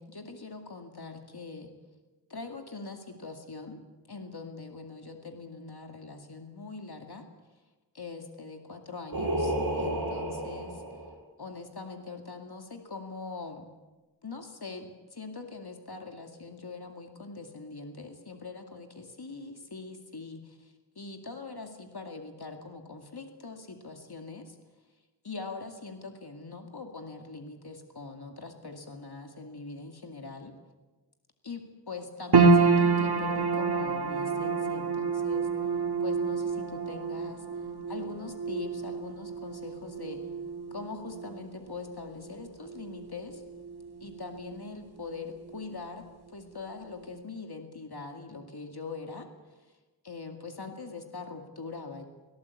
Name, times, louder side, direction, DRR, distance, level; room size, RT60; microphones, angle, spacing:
voice 1, 0.0-1.7 2.3-3.8 4.1-7.2 7.9-10.8 11.4-13.7 14.2-24.6 25.2-30.5 31.4-35.5 36.0-40.2 40.7-43.4 44.0-46.0 46.3-49.3 50.0-52.0, left 4 dB, 80° left, 4 dB, 2.3 m, -42 dB
Singing, 9.1-11.1, right 1 dB, 60° right, 7.3 m, -31 dB
sound 1, 32.3-44.7 45.0-45.9 46.4-46.5, right 4 dB, 85° right, 1.6 m, -28 dB
25.5 x 17.5 x 8.4 m, 1.2 s
wide cardioid pair, 45°, 38 cm